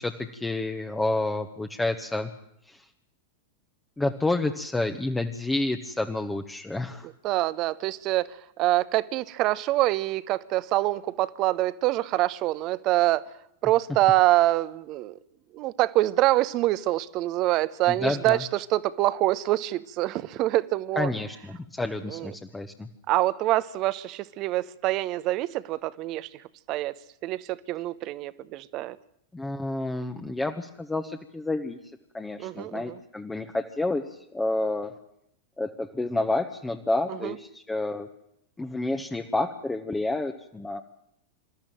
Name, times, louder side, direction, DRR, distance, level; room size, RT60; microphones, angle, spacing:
voice 1, 0.0-2.3 2.7-2.9 4.0-7.1 17.9-18.4 21.0-22.9 29.3-31.8 32.1-34.0 34.3-34.9 35.6-38.1 38.6-40.8, left 2 dB, 10° left, 4 dB, 1.2 m, -29 dB
voice 2, 7.2-13.2 13.6-15.2 15.5-21.1 22.1-22.3 23.1-26.3 26.7-26.9 27.2-29.0 32.4-33.0 37.1-37.4, right 16 dB, 40° right, 17 dB, 1.0 m, -25 dB
26.5 x 13.5 x 9.2 m, 0.77 s
figure-of-eight pair, 90°, 0 cm